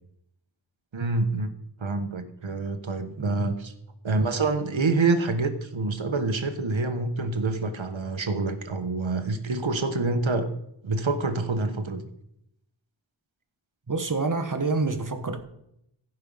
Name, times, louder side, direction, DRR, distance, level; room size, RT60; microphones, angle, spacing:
voice 1, 0.9-1.5 1.8-3.7 4.0-10.5 10.8-12.0, right 3 dB, 80° right, 1.2 m, -27 dB
voice 2, 3.2-3.6 13.9-15.4, right 3 dB, 40° right, 1.4 m, -28 dB
15.5 x 5.5 x 5.5 m
wide cardioid pair, 50°, 46 cm